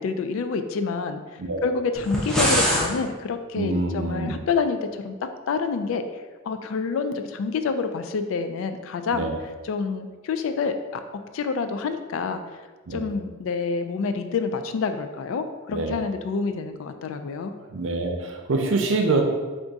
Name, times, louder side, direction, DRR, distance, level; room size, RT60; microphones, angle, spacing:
voice 1, 0.0-1.2 1.6-4.8 5.0-5.1 5.5-6.0 6.4-9.3 9.6-11.0 11.3-12.4 12.9-17.5, left 5 dB, 75° left, 8 dB, 0.3 m, -27 dB
sound 1, 1.9-2.9, equal, 5° left, 0.5 m, -22 dB
voice 2, 3.5-4.3 9.1-9.3 12.9-13.1 15.7-16.0 17.7-19.2, right 3 dB, 65° right, 3 dB, 0.5 m, -25 dB
3.5 x 2.4 x 3.9 m, 1.3 s
head